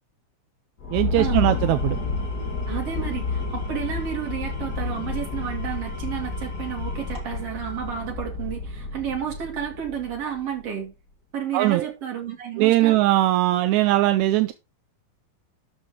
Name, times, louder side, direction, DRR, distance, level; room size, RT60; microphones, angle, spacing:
sound 1, 0.8-10.4, left 3 dB, 40° left, 1.6 m, -30 dB
voice 1, 0.9-2.0 11.5-11.9 12.6-14.5, right 16 dB, 80° right, 1.8 m, -20 dB
Engine / Tools, 1.2-8.6, left 2 dB, 30° right, 2.3 m, -42 dB
voice 2, 2.7-10.9 11.3-13.0, right 8 dB, 50° right, 3.4 m, -31 dB
12.5 x 5.9 x 3.7 m
omnidirectional pair, 3.6 m